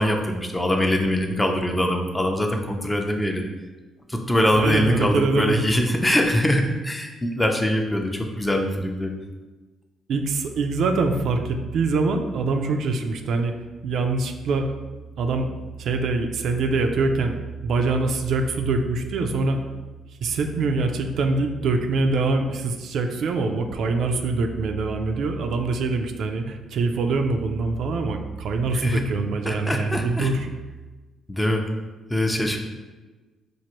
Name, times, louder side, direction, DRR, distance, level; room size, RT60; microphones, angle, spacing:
voice 1, 0.0-3.5 4.1-9.1 28.7-29.1 29.5-30.3 31.3-31.7 32.1-32.6, left 1 dB, 10° left, 3 dB, 0.5 m, -23 dB
voice 2, 4.6-5.6 10.1-13.5 13.8-14.7 15.2-15.5 15.8-17.3 17.6-19.6 20.2-30.5, right 3 dB, 70° right, 5 dB, 0.4 m, -24 dB
4.5 x 2.5 x 2.9 m, 1.2 s
cardioid pair, 90°, 0 cm